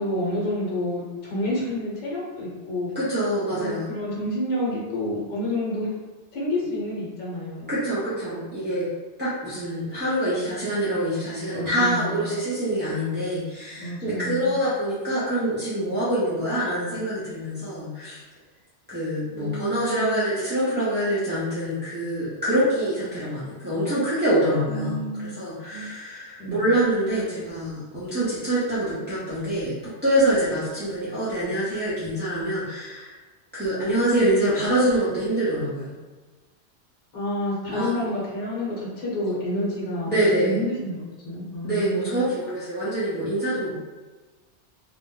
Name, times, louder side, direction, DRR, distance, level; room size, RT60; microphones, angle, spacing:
voice 1, 0.0-2.9 3.5-5.9 6.3-7.7 11.5-12.3 13.8-14.5 19.3-20.3 24.7-25.4 25.6-26.0 26.4-26.6 37.1-42.3, left 1 dB, 55° left, -5 dB, 1.0 m, -29 dB
voice 2, 2.9-3.9 7.7-8.9 9.2-18.2 18.9-29.7 30.0-33.2 33.5-35.9 37.7-38.0 40.1-40.5 41.6-43.7, right 1 dB, 15° right, -12 dB, 0.4 m, -25 dB
2.3 x 2.0 x 3.6 m, 1.2 s
omnidirectional pair, 1.2 m